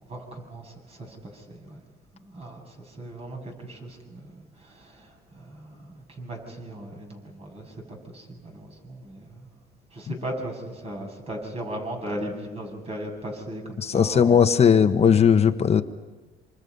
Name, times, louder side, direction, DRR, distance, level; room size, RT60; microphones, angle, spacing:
voice 1, 0.1-1.8 2.2-4.3 4.6-5.1 5.3-9.5 9.9-14.4, right 1 dB, 35° right, 2 dB, 7.4 m, -37 dB
voice 2, 13.8-15.8, left 7 dB, 40° left, 9 dB, 1.3 m, -18 dB
27.5 x 27.0 x 5.6 m, 1.2 s
cardioid pair, 110°, 17 cm